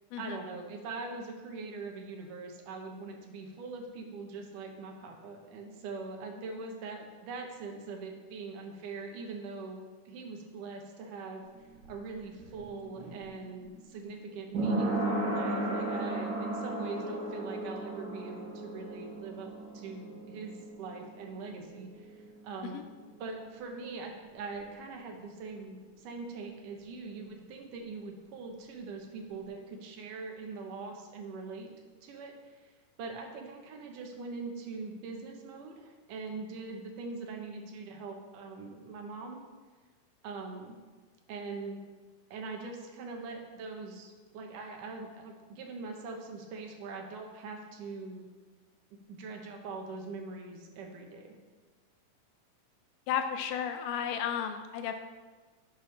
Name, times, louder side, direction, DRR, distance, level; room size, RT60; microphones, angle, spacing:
voice 1, 0.2-11.5 11.9-22.8 23.2-31.7 32.0-32.7 33.0-39.4 40.2-40.7 41.3-41.8 42.3-48.3 48.9-51.4, right 4 dB, 80° right, 2 dB, 2.6 m, -42 dB
sound 1, 11.4-23.0 23.2-23.3, right 1 dB, 65° right, 2.9 m, -36 dB
voice 2, 53.1-55.0, left 8 dB, 85° left, 7 dB, 2.1 m, -33 dB
11.5 x 6.8 x 3.3 m, 1.4 s
omnidirectional pair, 3.7 m